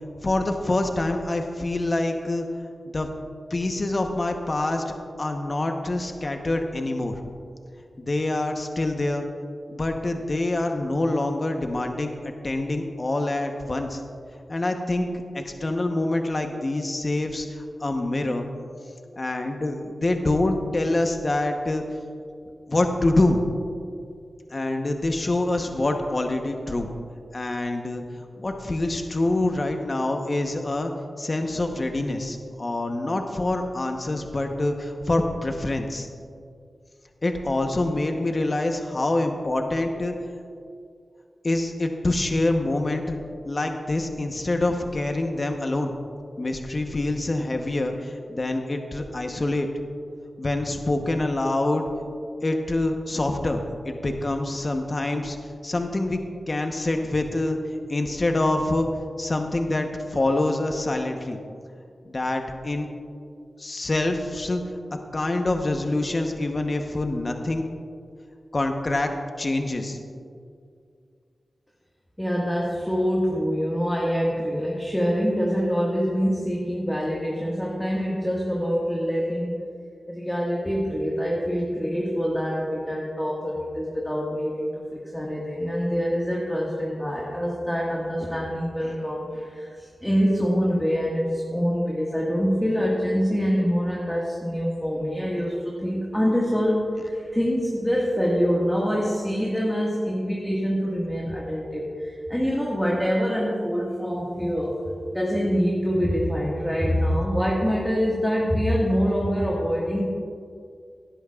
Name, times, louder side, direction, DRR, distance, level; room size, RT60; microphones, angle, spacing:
voice 1, 0.2-2.5 2.9-3.1 3.5-7.1 8.1-9.3 9.7-14.0 14.5-15.1 15.3-18.4 19.2-21.8 22.7-23.4 24.5-26.9 27.3-30.9 31.2-36.1 37.2-40.1 41.4-43.2 43.5-46.0 46.4-49.7 50.4-51.8 52.4-55.4 55.6-56.2 56.5-57.6 57.9-58.9 59.2-61.4 62.1-62.9 63.6-64.6 65.1-67.6 68.5-69.1 69.4-70.0, left 2 dB, 45° left, 4 dB, 1.0 m, -26 dB
voice 2, 72.2-79.6 80.1-104.8 105.1-110.1, equal, 10° left, -4 dB, 1.7 m, -25 dB
17.0 x 10.5 x 2.4 m, 2.3 s
cardioid pair, 60°, 0 cm